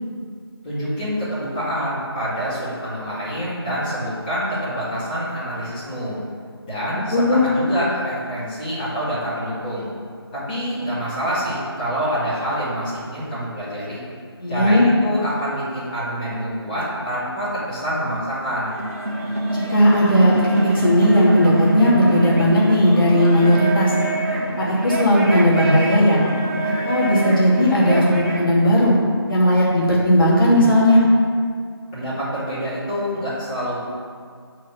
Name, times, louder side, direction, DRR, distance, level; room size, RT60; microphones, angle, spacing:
voice 1, 0.6-6.2 6.6-9.9 10.3-14.0 14.5-18.7 31.9-33.8, equal, 20° left, -12 dB, 2.6 m, -26 dB
voice 2, 7.1-7.5 14.4-14.9 19.5-23.9 24.6-26.2 26.6-29.0 29.3-31.0, equal, 55° left, -6 dB, 2.5 m, -16 dB
sound 1, 18.6-28.5, right 2 dB, 35° right, 1.0 m, -25 dB
8.0 x 4.6 x 7.2 m, 2.1 s
figure-of-eight pair, 160°, 14 cm